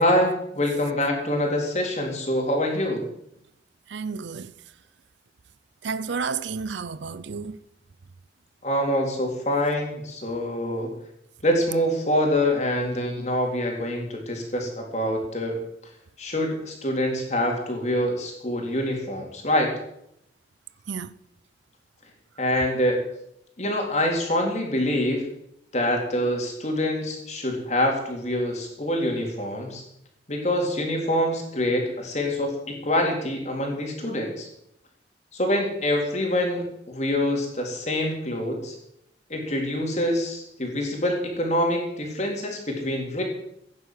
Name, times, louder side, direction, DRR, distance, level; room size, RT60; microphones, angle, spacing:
voice 1, 0.0-3.1 8.6-10.9 11.4-15.6 16.2-19.7 22.4-23.0 23.6-25.3 25.7-29.8 30.3-34.5 35.3-38.7 39.3-43.2, left 1 dB, 40° left, 3.8 m, -25 dB
voice 2, 3.9-4.5 5.8-7.6 20.9-21.1, right 5 dB, 80° right, 0.6 m, -31 dB
15.5 x 10.5 x 7.7 m
head